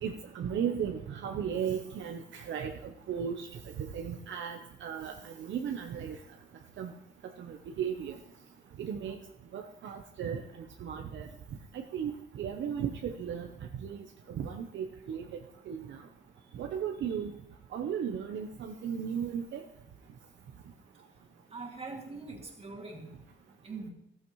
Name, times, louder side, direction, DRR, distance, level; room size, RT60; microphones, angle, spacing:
voice 1, 0.0-3.5 3.9-6.2 6.8-6.9 7.4-8.2 8.8-9.2 9.5-11.3 11.7-13.5 13.8-15.2 15.7-16.0 16.5-17.3 17.7-19.6, right 8 dB, 65° right, 3 dB, 0.8 m, -36 dB
voice 2, 21.5-23.1 23.6-23.9, right 3 dB, 30° right, 1 dB, 2.3 m, -42 dB
14.5 x 14.0 x 3.1 m, 0.84 s
cardioid pair, 150°, 21 cm